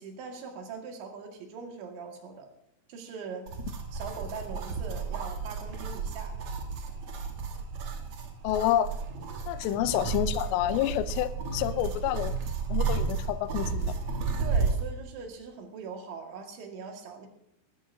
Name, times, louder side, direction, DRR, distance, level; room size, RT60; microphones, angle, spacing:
voice 1, 0.0-2.5 2.9-3.5 3.9-6.3 9.6-9.8 14.4-17.3, right 5 dB, 85° right, 3 dB, 4.2 m, -41 dB
sound 1, 3.5-14.8, right 5 dB, 60° right, 1.8 m, -32 dB
voice 2, 8.4-8.9 9.5-12.3 12.7-13.9, left 12 dB, 85° left, 13 dB, 2.8 m, -28 dB
20.5 x 14.0 x 2.7 m, 0.78 s
omnidirectional pair, 5.0 m